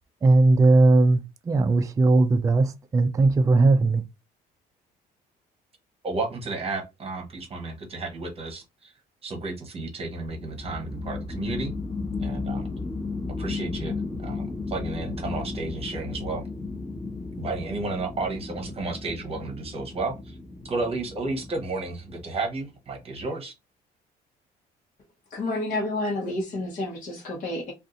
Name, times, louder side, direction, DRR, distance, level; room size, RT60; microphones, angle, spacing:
voice 1, 0.2-1.2 1.5-4.0, right 2 dB, 20° right, 0.3 m, -18 dB
voice 2, 6.0-8.9 9.2-11.7 12.2-12.7 13.4-16.4 17.4-20.4 20.6-23.5, right 3 dB, 35° right, 1.0 m, -32 dB
sound 1, 10.3-22.3, left 3 dB, 30° left, 1.2 m, -34 dB
voice 3, 25.3-27.7, left 2 dB, 50° left, 1.1 m, -29 dB
2.6 x 2.4 x 3.7 m
cardioid pair, 110°, 17 cm